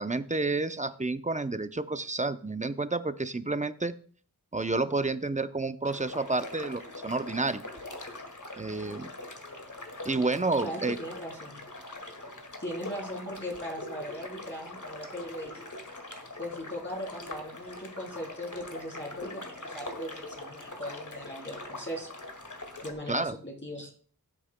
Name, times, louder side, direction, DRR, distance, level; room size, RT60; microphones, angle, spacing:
voice 1, 0.0-3.9 4.5-7.6 8.6-9.1 10.0-11.0 23.1-23.3, right 3 dB, 20° right, 11 dB, 0.6 m, -30 dB
sound 1, 5.8-22.9, left 2 dB, 50° left, 2.0 m, -43 dB
voice 2, 10.6-11.6 12.6-15.7 16.4-22.1 22.8-23.9, equal, 30° left, -2 dB, 3.2 m, -39 dB
17.5 x 8.6 x 2.2 m, 0.43 s
wide cardioid pair, 55°, 37 cm